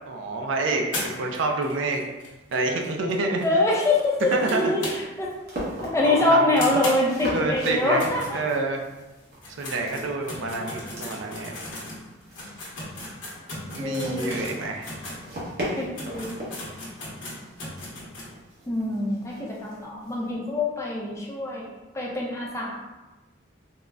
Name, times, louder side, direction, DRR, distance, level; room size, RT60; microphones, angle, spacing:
voice 1, 0.1-2.1 2.5-3.5 4.3-4.9 6.0-6.8 7.3-8.8 9.6-11.6 13.7-14.9, right 2 dB, 75° right, 3 dB, 0.4 m, -28 dB
sound 1, 0.9-5.3 5.6-5.7 6.0-6.1 6.6-8.9 9.3-15.2 15.7-15.8 15.9-18.3, left 1 dB, 75° left, 0.8 m, -37 dB
voice 2, 3.4-5.3 5.8-8.4 10.6-11.0 13.8-14.3 15.7-16.6 18.7-22.8, left 2 dB, 15° left, -3 dB, 0.4 m, -25 dB
sound 2, 4.0-20.3, equal, 50° right, 0.8 m, -40 dB
3.7 x 2.0 x 2.3 m, 1.1 s
head